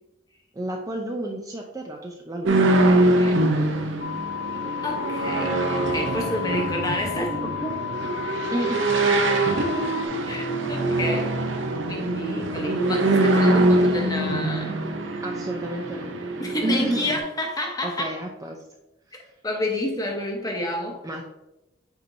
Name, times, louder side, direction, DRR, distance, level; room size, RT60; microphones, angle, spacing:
voice 1, 0.5-2.7 8.5-8.9 15.2-16.1 16.6-17.0 17.8-18.6 21.0-21.2, right 1 dB, 15° right, 1 dB, 0.4 m, -30 dB
sound 1, 2.5-17.2, right 2 dB, 70° right, 0.7 m, -23 dB
sound 2, 4.0-10.1, left 12 dB, 65° left, 0.6 m, -33 dB
voice 2, 4.8-7.8 10.3-11.3 11.9-14.8 15.3-15.4 16.4-18.1 19.4-21.0, left 1 dB, 20° left, 2 dB, 0.9 m, -29 dB
8.1 x 4.4 x 2.6 m, 0.91 s
head